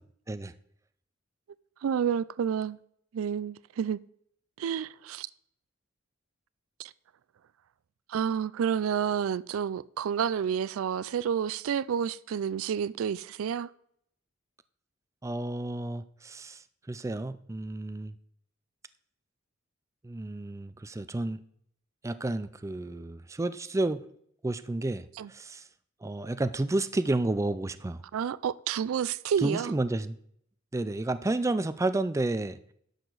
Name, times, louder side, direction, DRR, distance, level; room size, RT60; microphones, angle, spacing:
voice 1, 1.8-2.8 3.1-4.0 4.6-5.3 6.8-6.9 8.1-13.7 25.2-25.3 28.1-29.8, right 8 dB, 90° right, 0.4 m, -30 dB
voice 2, 15.2-16.6 16.9-18.1 20.0-21.4 22.0-24.0 24.4-25.6 26.0-28.0 29.4-30.2 30.7-32.6, right 2 dB, 15° right, 0.4 m, -31 dB
11.0 x 6.7 x 4.0 m
head